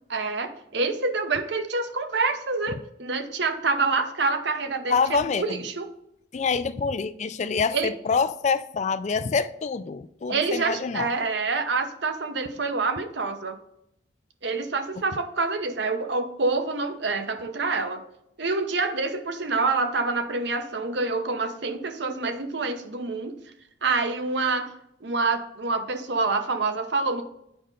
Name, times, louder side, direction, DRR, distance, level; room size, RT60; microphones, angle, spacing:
voice 1, 0.1-5.0 5.4-5.9 7.7-7.9 10.3-13.5 14.4-18.0 18.4-23.4 23.8-24.7 25.0-27.2, right 3 dB, 60° right, 0.8 m, -27 dB
voice 2, 4.9-5.6 6.3-11.1, left 5 dB, 35° left, 0.3 m, -26 dB
8.6 x 5.4 x 3.8 m
head